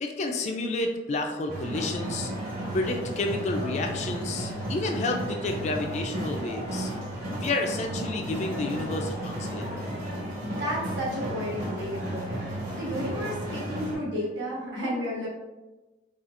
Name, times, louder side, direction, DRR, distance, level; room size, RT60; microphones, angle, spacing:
voice 1, 0.0-2.3 2.7-6.9 7.4-9.9, left 2 dB, 35° left, 3 dB, 0.3 m, -30 dB
sound 1, 1.5-14.0, right 1 dB, 50° right, 1.1 m, -33 dB
voice 2, 10.4-12.4 12.8-15.3, equal, 70° right, -7 dB, 1.5 m, -32 dB
4.1 x 2.3 x 2.5 m, 1.1 s
head